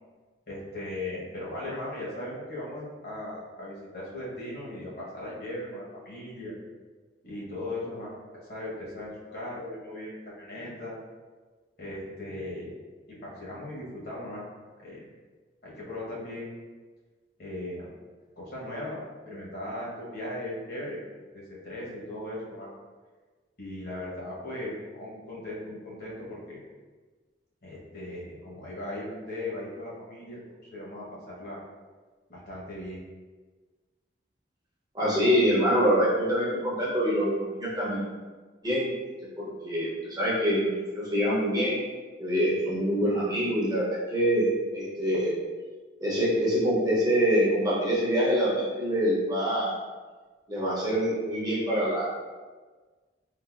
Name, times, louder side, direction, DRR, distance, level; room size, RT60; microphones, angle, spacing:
voice 1, 0.5-6.5 7.2-8.2 8.5-11.0 11.8-12.7 13.1-14.5 14.8-15.0 15.6-16.6 17.4-17.9 18.4-19.0 19.3-21.0 21.3-22.7 23.6-26.6 27.6-30.4 30.7-31.6 32.3-33.0, left 1 dB, 50° left, -6 dB, 1.0 m, -38 dB
voice 2, 34.9-38.0 38.6-38.9 39.6-41.8 42.2-45.3 46.0-49.8 50.5-52.1, equal, 20° right, -7 dB, 0.7 m, -25 dB
3.7 x 2.5 x 2.4 m, 1.4 s
head